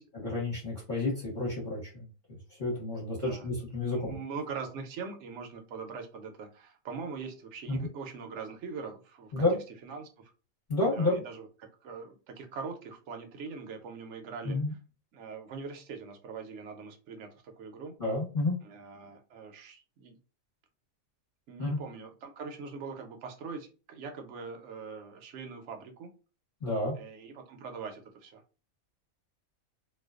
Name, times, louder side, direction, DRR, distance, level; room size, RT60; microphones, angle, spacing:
voice 1, 0.2-2.1 2.6-4.1 7.7-7.8 9.3-9.6 10.7-11.2 14.4-14.7 18.0-18.6 21.6-21.8 26.6-26.9, left 2 dB, 40° left, -5 dB, 0.9 m, -30 dB
voice 2, 3.2-3.5 3.9-9.5 9.8-10.3 10.9-14.8 15.1-17.9 18.6-20.2 21.5-26.1 26.9-28.6, right 5 dB, 65° right, 5 dB, 0.8 m, -42 dB
2.4 x 2.2 x 2.3 m, 0.34 s
omnidirectional pair, 1.5 m